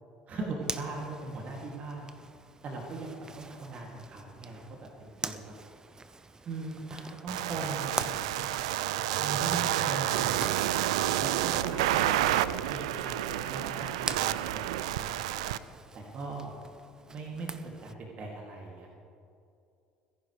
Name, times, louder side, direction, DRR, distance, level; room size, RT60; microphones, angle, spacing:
voice 1, 0.3-2.1 2.6-5.6 6.4-8.5 9.2-10.4 11.2-15.5 15.9-16.6 17.1-17.5 17.8-18.9, right 3 dB, 45° right, -1 dB, 2.6 m, -40 dB
Zipper (clothing), 0.6-17.9, right 3 dB, 20° right, 0.8 m, -44 dB
sound 1, 7.3-15.6, right 13 dB, 75° right, 0.4 m, -29 dB
30.0 x 11.0 x 3.3 m, 2.5 s
hypercardioid pair, 65°, 3 cm